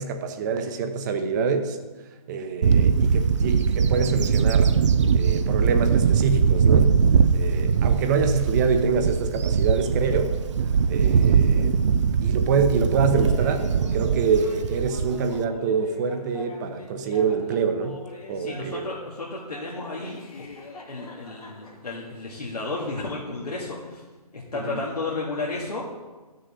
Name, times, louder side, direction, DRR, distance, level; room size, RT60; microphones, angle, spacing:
voice 1, 0.0-1.8 2.3-4.7 5.1-6.9 7.3-10.4 10.9-11.8 12.2-18.0 18.3-18.9 24.5-24.8, right 5 dB, 30° right, 7 dB, 0.9 m, -25 dB
Bird / Wind, 2.6-15.4, right 6 dB, 50° right, 0.5 m, -21 dB
Laughter, 13.1-19.1 19.5-22.1, left 3 dB, 65° left, 2.8 m, -44 dB
voice 2, 18.4-20.5 20.9-24.0 24.3-25.8, left 3 dB, 85° left, -5 dB, 2.0 m, -32 dB
13.5 x 6.5 x 4.2 m, 1.2 s
figure-of-eight pair, 145°, 20 cm